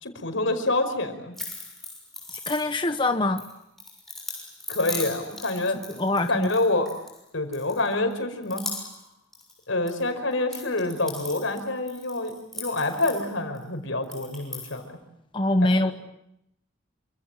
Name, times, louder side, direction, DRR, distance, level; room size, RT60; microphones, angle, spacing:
voice 1, 0.0-1.4 4.7-6.0 6.3-6.9 7.3-8.6 9.7-15.0 15.6-15.7, left 2 dB, 80° left, 7 dB, 5.3 m, -27 dB
sound 1, 1.3-3.0 3.4-7.2 7.5-8.1 8.4-9.1 9.3-10.0 10.3-13.6 14.0-14.8, left 2 dB, ahead, 6.7 m, -39 dB
voice 2, 2.5-3.4 5.7-6.5 15.3-15.9, left 2 dB, 25° left, 7 dB, 1.1 m, -24 dB
28.5 x 26.0 x 7.5 m, 0.79 s
head